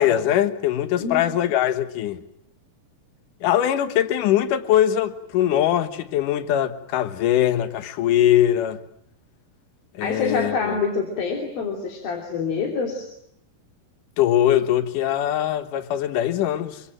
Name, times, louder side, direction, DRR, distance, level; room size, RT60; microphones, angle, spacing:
voice 1, 0.0-2.2 3.4-8.8 10.0-10.6 14.2-16.8, left 11 dB, 70° left, 2.8 m, -21 dB
voice 2, 10.0-13.1, left 4 dB, 85° left, 4.8 m, -26 dB
27.0 x 23.5 x 9.0 m
omnidirectional pair, 4.1 m